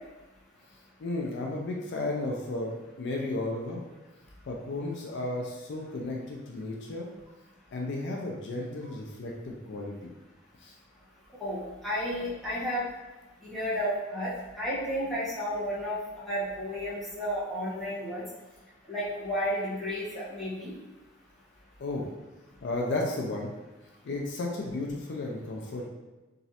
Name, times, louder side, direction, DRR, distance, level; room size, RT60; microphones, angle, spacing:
voice 1, 1.0-3.8 4.5-7.1 7.7-10.1 10.6-10.7 21.8-22.1 22.6-23.5 24.0-25.9, left 2 dB, 55° left, -1 dB, 0.4 m, -33 dB
voice 2, 11.4-12.8 13.4-16.0 16.3-18.2 18.9-20.7, equal, ahead, -11 dB, 1.0 m, -32 dB
3.0 x 2.5 x 2.7 m, 1.1 s
head